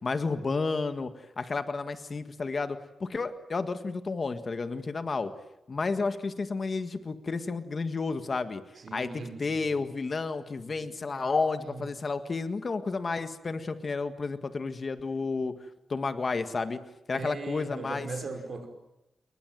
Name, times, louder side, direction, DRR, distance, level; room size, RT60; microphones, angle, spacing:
voice 1, 0.0-5.3 5.7-8.6 8.9-15.5 15.9-16.8 17.1-18.1, left 4 dB, 40° left, 10 dB, 1.7 m, -31 dB
voice 2, 8.8-9.8 10.8-11.4 11.7-11.9 17.1-18.7, right 4 dB, 55° right, 7 dB, 5.6 m, -40 dB
28.0 x 22.5 x 9.2 m, 0.92 s
wide cardioid pair, 140°, 0 cm